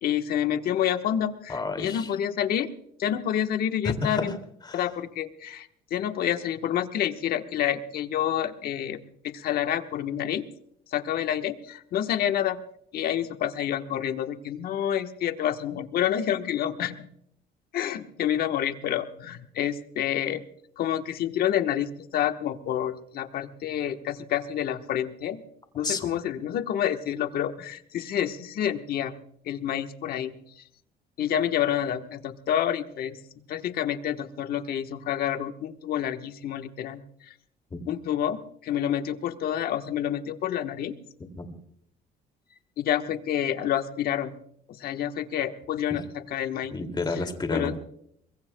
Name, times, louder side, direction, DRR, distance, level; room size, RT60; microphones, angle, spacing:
voice 1, 0.0-2.7 3.0-4.3 4.7-9.0 9.2-10.5 10.9-12.6 12.9-17.1 17.7-20.4 20.8-25.4 25.7-29.1 29.5-30.3 31.2-33.1 33.5-37.0 37.9-40.9 42.8-44.3 44.8-46.0 46.3-46.7 47.5-47.7, left 10 dB, 65° left, 8 dB, 1.2 m, -28 dB
voice 2, 1.5-2.1 3.8-4.4 4.6-4.8 25.8-26.1 37.7-37.8 41.4-41.5 46.7-47.8, left 3 dB, 25° left, 7 dB, 2.4 m, -30 dB
24.0 x 21.5 x 2.2 m, 0.70 s
cardioid pair, 110°, 17 cm